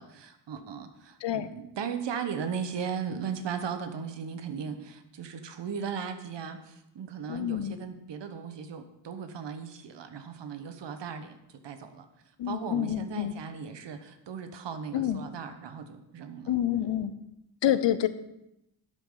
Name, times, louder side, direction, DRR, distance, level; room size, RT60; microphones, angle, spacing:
voice 1, 0.0-12.1 12.4-16.5 17.6-17.8, right 6 dB, 80° right, 8 dB, 1.2 m, -37 dB
voice 2, 7.3-7.8 12.4-13.3 14.9-15.2 16.5-17.1 17.6-18.1, left 11 dB, 90° left, 13 dB, 0.8 m, -27 dB
12.0 x 8.4 x 3.9 m, 0.84 s
wide cardioid pair, 145°, 42 cm